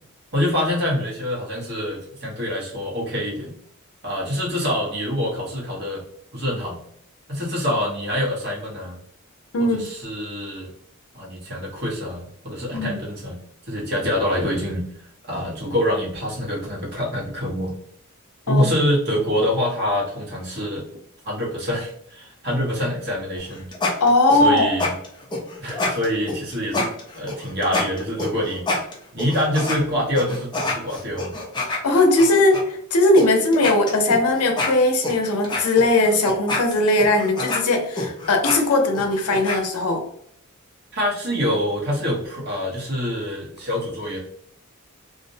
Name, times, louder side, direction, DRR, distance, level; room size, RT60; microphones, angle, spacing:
voice 1, 0.3-3.5 4.0-6.0 6.3-6.8 7.3-9.0 9.6-10.7 11.1-13.4 13.6-14.8 15.3-17.7 18.5-20.8 21.2-23.7 24.4-24.9 25.6-28.6 29.1-31.3 40.9-44.2, equal, 50° right, -4 dB, 1.0 m, -25 dB
voice 2, 9.5-9.9 12.7-13.0 18.5-18.7 24.0-24.7 31.8-40.0, left 2 dB, 85° left, 4 dB, 0.6 m, -19 dB
sound 1, 23.4-29.8 30.2-32.6 33.2-33.3 33.5-39.6, left 2 dB, 20° left, 0.5 m, -27 dB
2.4 x 2.0 x 2.7 m, 0.67 s
head